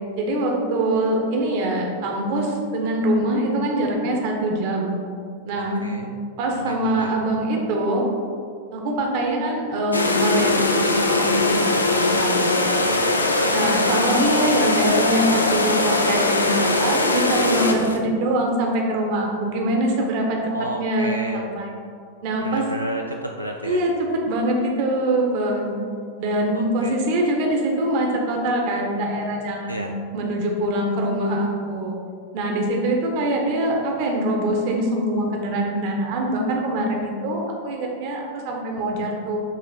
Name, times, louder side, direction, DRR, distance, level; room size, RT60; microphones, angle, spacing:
voice 1, 0.2-5.0 5.4-5.9 6.4-8.0 8.7-11.6 11.9-12.9 13.5-20.4 20.8-21.7 22.2-22.6 23.6-23.9 24.3-25.7 26.2-31.9 32.3-39.4, right 1 dB, 45° right, 1 dB, 1.1 m, -24 dB
voice 2, 5.6-6.1 6.6-7.1 20.5-21.4 22.4-23.9 26.5-27.0 29.7-29.9, equal, 90° right, 1 dB, 0.3 m, -31 dB
sound 1, 9.9-18.0, left 2 dB, 80° left, 0.5 m, -20 dB
7.3 x 3.5 x 4.2 m, 2.4 s
figure-of-eight pair, 90°, 0 cm